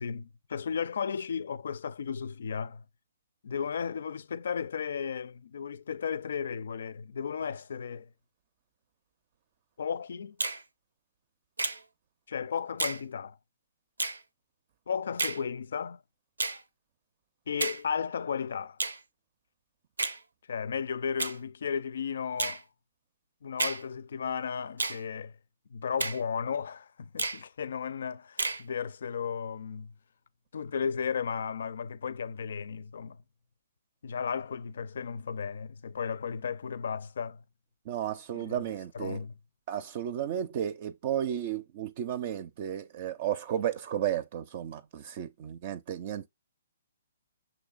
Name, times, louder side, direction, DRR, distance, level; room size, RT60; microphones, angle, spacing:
voice 1, 0.0-2.8 3.4-8.1 9.8-10.4 12.3-13.4 14.9-16.0 17.5-18.8 20.5-22.7 23.4-25.3 25.7-29.9 30.5-33.2 34.0-37.4 38.3-38.6 38.9-39.3, left 6 dB, 65° left, 0.4 m, -34 dB
Finger snapping, 10.4-10.6 11.6-11.8 12.8-13.0 14.0-14.2 15.2-15.4 16.4-16.6 17.6-17.8 18.8-19.0 20.0-20.2 21.2-21.4 22.4-22.6 23.6-23.8 24.8-25.0 26.0-26.2 27.2-27.4 28.4-28.6, right 3 dB, 85° right, 0.6 m, -31 dB
voice 2, 37.9-39.2 39.7-46.3, right 10 dB, 45° right, 0.5 m, -33 dB
6.0 x 3.2 x 2.4 m
hypercardioid pair, 135°, 0 cm